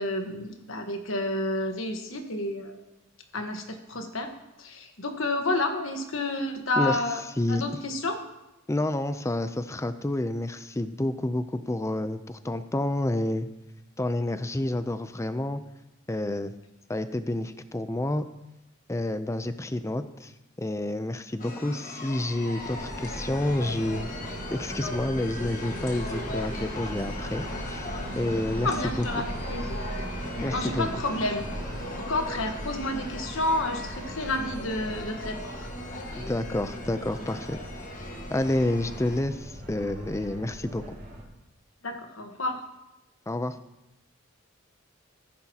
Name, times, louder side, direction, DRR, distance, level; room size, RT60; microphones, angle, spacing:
voice 1, 0.0-2.8 3.3-4.3 4.6-7.2 7.5-8.2 28.6-29.2 29.5-29.8 30.5-31.5 32.0-35.5 41.8-42.6, left 2 dB, 70° left, 5 dB, 1.3 m, -30 dB
voice 2, 8.7-13.5 14.0-15.6 16.1-16.5 16.9-18.2 18.9-20.3 20.6-24.1 24.5-29.1 30.4-30.9 36.2-37.6 38.3-41.0 43.3-43.6, left 1 dB, 15° left, 11 dB, 0.5 m, -29 dB
sound 1, 21.4-39.2, left 1 dB, 40° left, 1.6 m, -39 dB
sound 2, 22.6-41.2, right 1 dB, 45° right, 2.7 m, -39 dB
14.5 x 10.5 x 2.9 m, 0.94 s
head